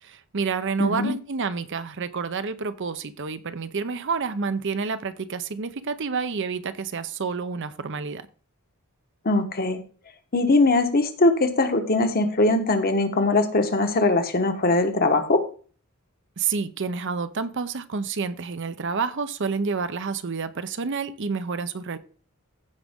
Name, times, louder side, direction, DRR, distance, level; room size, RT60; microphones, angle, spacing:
voice 1, 0.0-8.2 16.4-22.0, right 5 dB, 55° right, 0.7 m, -29 dB
voice 2, 0.8-1.1 9.2-9.8 10.3-15.4, left 2 dB, 45° left, 1.2 m, -21 dB
15.0 x 5.2 x 3.6 m
head